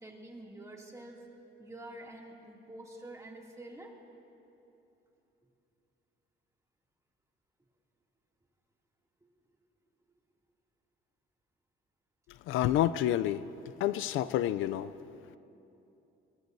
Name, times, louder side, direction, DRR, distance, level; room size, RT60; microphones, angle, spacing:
voice 1, 0.0-1.3 1.6-3.9, right 1 dB, 15° right, -1 dB, 2.5 m, -47 dB
voice 2, 12.5-13.4 13.8-14.9, left 12 dB, 85° left, 14 dB, 0.4 m, -28 dB
22.0 x 21.0 x 2.7 m, 2.9 s
cardioid pair, 90°, 20 cm